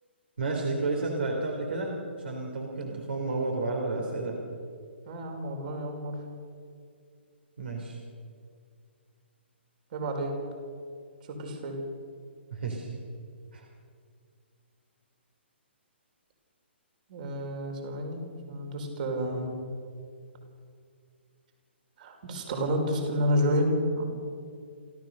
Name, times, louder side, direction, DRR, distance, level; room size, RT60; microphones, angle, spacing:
voice 1, 0.4-4.4 7.6-8.0 12.5-12.9 13.5-13.6, right 3 dB, 60° right, 0 dB, 3.8 m, -31 dB
voice 2, 5.1-6.2 9.9-10.4 11.3-11.8 17.1-18.2 18.5-19.5 22.0-24.0, equal, 45° right, 3 dB, 5.2 m, -30 dB
29.0 x 14.0 x 6.7 m, 2.2 s
figure-of-eight pair, 125°, 6 cm